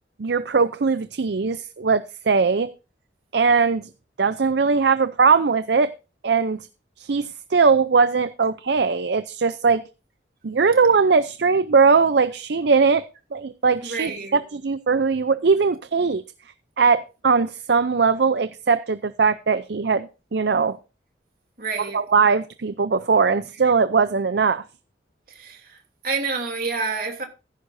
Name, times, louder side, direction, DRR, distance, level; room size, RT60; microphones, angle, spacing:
voice 1, 0.2-2.7 3.3-3.8 4.2-5.9 6.2-6.6 7.0-9.8 10.4-13.0 13.3-16.2 16.8-20.8 21.9-24.6, right 5 dB, 65° right, 0.5 m, -20 dB
voice 2, 13.8-14.4 21.6-22.0 25.3-27.2, right 4 dB, 50° right, 3.1 m, -29 dB
15.0 x 11.0 x 2.7 m
head